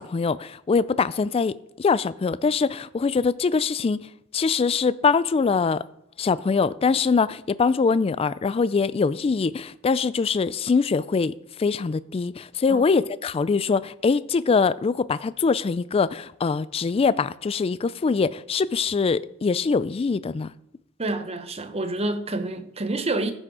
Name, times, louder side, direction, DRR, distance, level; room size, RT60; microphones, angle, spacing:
voice 1, 0.0-4.0 4.3-5.8 6.2-11.3 11.6-20.5, left 5 dB, 30° left, 0.3 m, -23 dB
voice 2, 21.0-23.3, right 2 dB, 30° right, 0.9 m, -28 dB
14.5 x 6.2 x 4.8 m
head